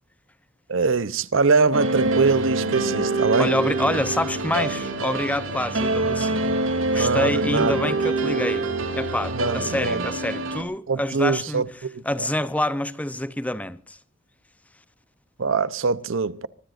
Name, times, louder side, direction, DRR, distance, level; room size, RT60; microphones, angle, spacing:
voice 1, 0.7-3.5 6.9-8.1 9.3-10.1 10.9-12.3 15.4-16.5, right 4 dB, 75° right, 0.8 m, -23 dB
sound 1, 1.7-10.6, right 2 dB, 90° right, 2.8 m, -25 dB
voice 2, 3.4-6.5 6.9-8.7 8.9-11.6 12.0-14.0, left 1 dB, 5° left, 0.7 m, -27 dB
24.0 x 21.5 x 2.6 m
head